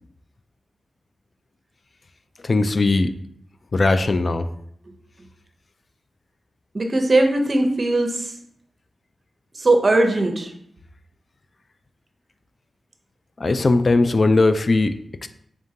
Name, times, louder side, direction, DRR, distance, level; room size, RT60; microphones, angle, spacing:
voice 1, 2.4-3.1 3.7-4.5 13.4-15.3, left 3 dB, 50° left, 10 dB, 0.3 m, -19 dB
voice 2, 6.7-8.3 9.5-10.5, right 2 dB, 45° right, 4 dB, 0.7 m, -19 dB
3.6 x 3.5 x 2.8 m, 0.69 s
cardioid pair, 60°, 0 cm